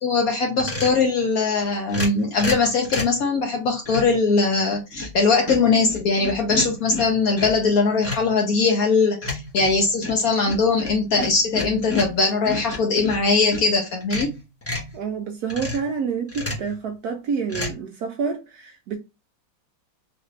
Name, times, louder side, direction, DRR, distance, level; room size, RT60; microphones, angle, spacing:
voice 1, 0.0-14.3, left 4 dB, 65° left, 0.9 m, -21 dB
sound 1, 0.6-1.0 1.9-3.2 3.8-4.2 4.7-5.2 5.5-7.7 8.0-8.3 9.2-13.7 14.0-14.9 15.5-15.9 16.3-16.7 17.5-17.7, left 2 dB, 15° left, 0.6 m, -31 dB
voice 2, 14.9-19.0, right 6 dB, 75° right, 0.9 m, -28 dB
4.1 x 2.5 x 3.1 m
omnidirectional pair, 2.1 m